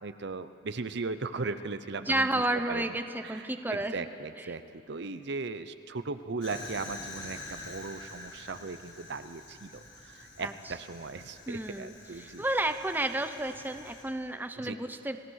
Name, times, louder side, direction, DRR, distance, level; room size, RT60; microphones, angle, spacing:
voice 1, 0.0-3.0 3.2-12.4 14.6-14.8, right 3 dB, 65° right, 11 dB, 0.7 m, -38 dB
voice 2, 2.0-4.1 4.4-4.5 10.4-10.5 11.5-15.2, right 1 dB, 10° right, 8 dB, 0.8 m, -31 dB
Fire, 6.4-14.0, left 2 dB, 60° left, 6.2 m, -47 dB
29.0 x 17.5 x 6.5 m, 2.7 s
head